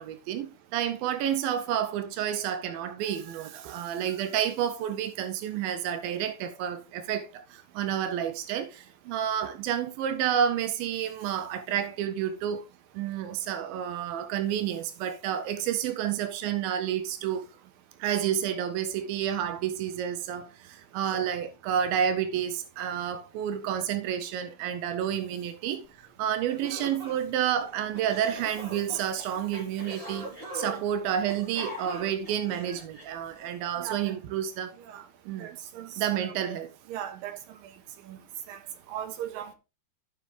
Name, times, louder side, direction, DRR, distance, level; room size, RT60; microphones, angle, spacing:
voice 1, 0.0-12.7 12.9-17.5 18.0-34.8 35.3-35.6 36.0-36.7, right 9 dB, 85° right, 2.1 m, -30 dB
sound 1, 26.1-26.2 26.5-33.6, right 1 dB, 15° right, 2.8 m, -42 dB
voice 2, 33.8-34.1 34.9-35.0 35.4-35.9 36.2-36.3 36.9-37.4 38.1-38.2 38.5-38.6 38.9-39.5, right 10 dB, 70° right, 2.5 m, -38 dB
15.0 x 5.5 x 3.2 m
omnidirectional pair, 5.0 m